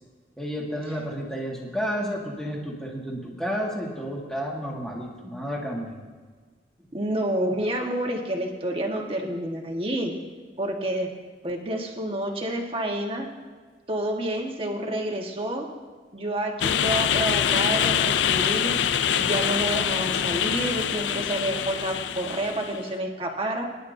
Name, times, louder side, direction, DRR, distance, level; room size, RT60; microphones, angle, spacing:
voice 1, 0.4-6.0, equal, 5° left, -3 dB, 2.0 m, -31 dB
voice 2, 6.9-10.1 10.6-11.1 11.4-13.3 13.9-15.7 16.1-18.7 19.2-23.7, right 1 dB, 30° right, 1 dB, 1.6 m, -29 dB
sound 1, 16.6-22.8, left 9 dB, 90° left, 0.4 m, -25 dB
24.0 x 11.0 x 2.8 m, 1.5 s
head